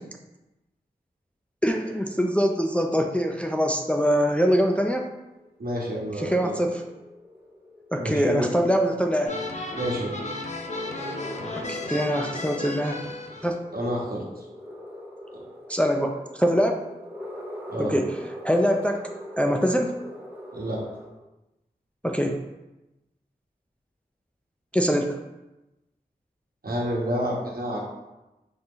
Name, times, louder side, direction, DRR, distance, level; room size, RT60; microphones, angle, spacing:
voice 1, 1.6-5.1 6.2-6.8 7.9-9.3 11.7-13.0 13.4-13.5 15.7-16.8 17.8-18.1 18.4-19.0 19.4-19.9 22.0-22.3 24.7-25.2, equal, 5° left, 2 dB, 0.4 m, -23 dB
sound 1, 5.1-21.1, equal, 10° right, 0.9 m, -43 dB
voice 2, 5.6-6.6 8.0-8.5 9.8-10.2 13.7-14.2 15.3-15.4 17.7-18.0 20.5-20.8 26.6-27.8, equal, 60° right, -3 dB, 1.1 m, -29 dB
sound 2, 9.2-13.5, left 2 dB, 45° left, 0.7 m, -34 dB
4.0 x 2.9 x 3.7 m, 1.0 s
wide cardioid pair, 50°, 17 cm